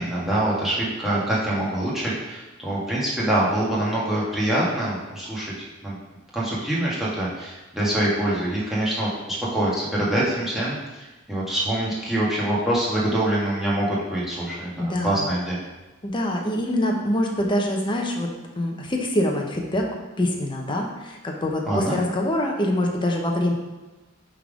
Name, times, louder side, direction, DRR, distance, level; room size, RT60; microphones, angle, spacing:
voice 1, 0.0-5.5 5.8-6.0 6.3-15.6 21.7-21.9, right 1 dB, ahead, -7 dB, 1.5 m, -25 dB
voice 2, 14.8-15.4 16.0-23.5, left 1 dB, 25° left, 0 dB, 0.8 m, -25 dB
5.5 x 3.6 x 5.0 m, 1.1 s
head